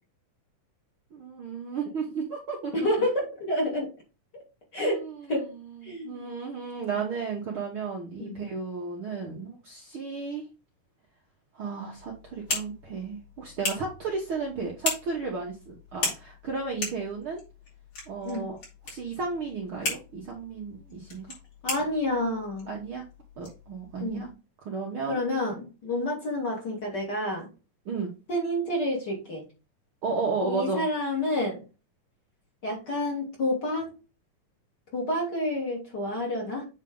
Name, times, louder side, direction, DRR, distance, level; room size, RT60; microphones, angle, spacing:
voice 1, 1.1-2.7 4.8-10.4 11.5-17.4 18.1-18.6 18.8-21.3 22.7-23.1 23.4-24.3 24.6-25.2 27.8-28.1 30.0-30.9, right 4 dB, 55° right, -1 dB, 1.6 m, -33 dB
voice 2, 2.7-3.9 4.3-4.4 4.7-5.0 5.3-5.5 5.8-6.2 8.2-8.4 18.2-18.5 21.6-22.7 24.0-24.3 25.1-27.5 28.3-29.4 30.4-31.6 32.6-33.9 34.9-36.6, left 1 dB, 35° left, -2 dB, 2.7 m, -29 dB
sound 1, 11.9-24.3, left 3 dB, 55° left, 5.2 m, -38 dB
8.2 x 4.1 x 3.8 m, 0.30 s
omnidirectional pair, 3.7 m